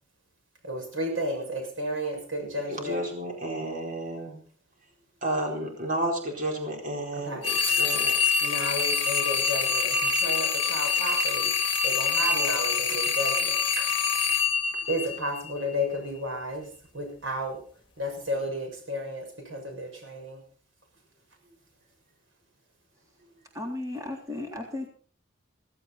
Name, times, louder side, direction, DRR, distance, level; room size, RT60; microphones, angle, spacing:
voice 1, 0.6-3.0 7.1-7.8 8.4-13.9 14.9-17.7 18.0-20.4, equal, 85° right, 3 dB, 6.6 m, -33 dB
voice 2, 2.7-4.4 5.2-8.3, right 1 dB, 40° right, 0 dB, 4.4 m, -32 dB
sound 1, 7.4-15.6, left 5 dB, 25° left, 3.0 m, -26 dB
voice 3, 23.5-24.9, left 2 dB, 15° right, 1 dB, 3.5 m, -35 dB
17.0 x 16.0 x 4.3 m, 0.43 s
head